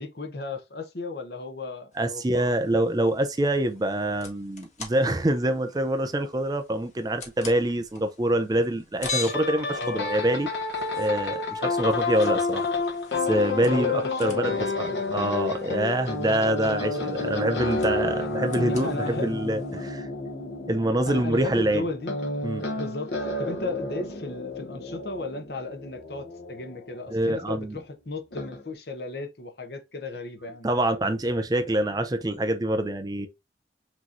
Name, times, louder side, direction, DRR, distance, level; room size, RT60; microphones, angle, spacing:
voice 1, 0.0-2.7 9.7-10.1 13.6-15.3 17.6-17.8 18.5-19.4 19.8-19.9 21.0-22.2 22.8-30.7, left 2 dB, 60° left, 0.9 m, -35 dB
sound 1, 1.9-19.9, left 4 dB, 40° left, 1.4 m, -44 dB
voice 2, 2.0-10.5 10.9-12.6 13.3-13.9 14.2-20.1 20.7-21.8 22.4-22.7 27.1-27.8 30.6-33.3, right 1 dB, 20° right, 0.5 m, -25 dB
sound 2, 9.0-27.5 28.3-28.6, left 3 dB, 80° left, 1.3 m, -30 dB
6.1 x 3.0 x 2.6 m
head